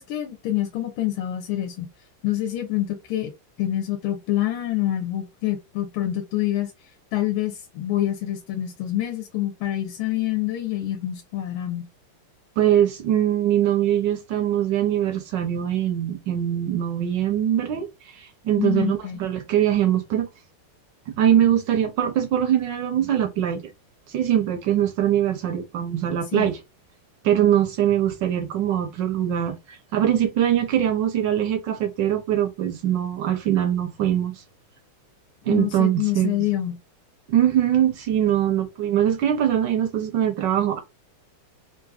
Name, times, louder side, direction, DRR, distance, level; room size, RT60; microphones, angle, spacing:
voice 1, 0.0-1.9 2.2-3.3 3.6-6.7 7.1-11.9 18.6-19.2 26.3-26.5 35.5-36.8, left 13 dB, 75° left, 1.5 m, -26 dB
voice 2, 12.6-17.9 18.1-20.3 21.1-23.6 24.1-26.6 27.2-34.3 35.5-36.3 37.3-40.8, right 10 dB, 75° right, 1.1 m, -22 dB
3.7 x 2.6 x 2.3 m
omnidirectional pair, 2.3 m